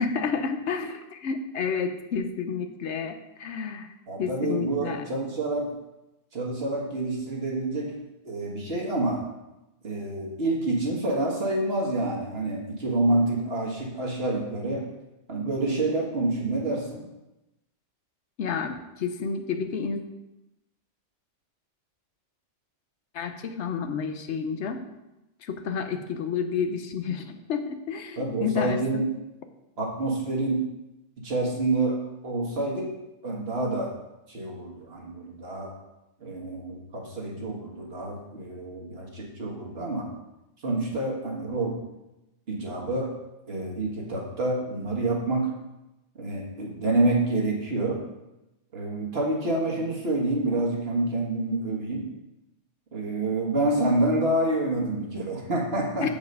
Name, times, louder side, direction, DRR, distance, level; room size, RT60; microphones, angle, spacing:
voice 1, 0.0-3.9 4.2-5.0 18.4-20.0 23.1-24.8 25.4-29.0 56.0-56.1, left 6 dB, 75° left, 7 dB, 1.0 m, -30 dB
voice 2, 4.1-5.7 6.3-8.0 8.2-9.2 9.8-14.9 15.3-17.1 28.2-29.1 29.8-30.7 31.2-33.0 33.2-33.9 34.3-35.7 36.2-40.1 40.6-41.8 42.5-43.1 43.5-45.5 46.2-48.0 48.7-52.1 52.9-56.1, right 2 dB, 55° right, -1 dB, 1.7 m, -27 dB
7.1 x 5.1 x 5.3 m, 0.95 s
omnidirectional pair, 1.2 m